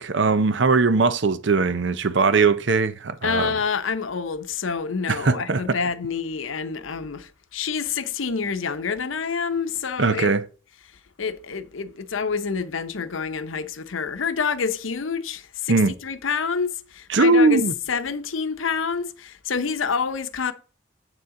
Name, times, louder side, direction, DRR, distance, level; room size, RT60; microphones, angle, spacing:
voice 1, 0.0-3.5 5.1-5.8 10.0-10.4 15.7-15.9 17.1-17.7, right 3 dB, 70° right, 0.6 m, -20 dB
voice 2, 3.2-10.3 11.2-17.6 17.9-20.5, left 5 dB, 90° left, 0.8 m, -27 dB
8.2 x 6.9 x 3.8 m
head